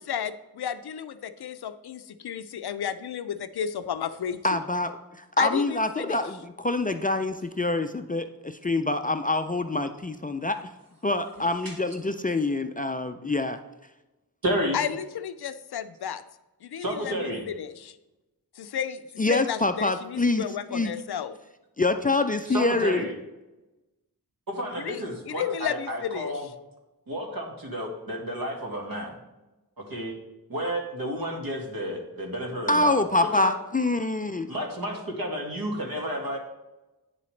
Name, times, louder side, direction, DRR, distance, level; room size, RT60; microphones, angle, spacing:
voice 1, 0.1-4.4 5.4-6.2 11.4-11.5 14.7-16.2 16.6-18.0 18.6-19.0 19.3-21.3 24.8-26.4, left 8 dB, 85° left, 12 dB, 0.5 m, -32 dB
voice 2, 4.4-10.7 11.0-13.6 19.2-20.4 20.7-20.9 21.8-23.0 32.7-34.5, left 2 dB, 25° left, 8 dB, 0.4 m, -26 dB
voice 3, 14.4-14.8 16.8-17.4 22.5-23.1 24.5-26.5 27.1-29.2 29.8-30.1 30.5-33.0 33.3-33.5 34.5-36.4, equal, 65° right, 1 dB, 1.7 m, -31 dB
9.0 x 6.8 x 3.2 m, 1.0 s
wide cardioid pair, 90°, 38 cm